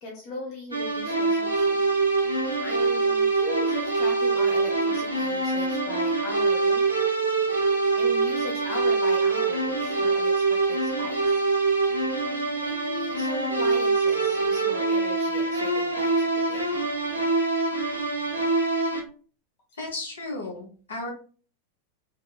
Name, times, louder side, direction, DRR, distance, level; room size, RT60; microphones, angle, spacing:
voice 1, 0.0-1.9 2.3-6.8 7.9-11.4 12.5-16.8, left 1 dB, 40° left, 2 dB, 0.5 m, -39 dB
sound 1, 0.7-19.0, right 3 dB, 85° right, 0.6 m, -24 dB
voice 2, 19.7-21.1, left 2 dB, 65° left, 1 dB, 0.8 m, -34 dB
2.7 x 2.2 x 2.3 m, 0.40 s
figure-of-eight pair, 90°, 0 cm